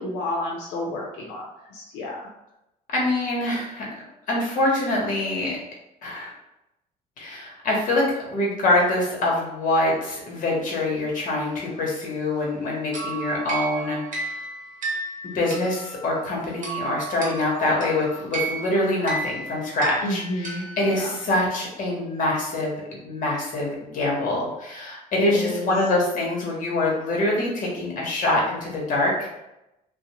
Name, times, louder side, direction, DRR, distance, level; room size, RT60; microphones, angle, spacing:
voice 1, 0.0-1.4 1.7-2.2 20.0-21.1 25.1-25.7, left 1 dB, 90° left, -3 dB, 0.6 m, -30 dB
voice 2, 2.9-3.8 4.3-5.6 6.0-6.3 7.2-14.3 15.2-29.3, left 2 dB, 50° left, -3 dB, 1.0 m, -25 dB
sound 1, 12.9-21.3, right 3 dB, 50° right, 0.8 m, -33 dB
2.4 x 2.0 x 2.9 m, 0.89 s
cardioid pair, 110°, 17 cm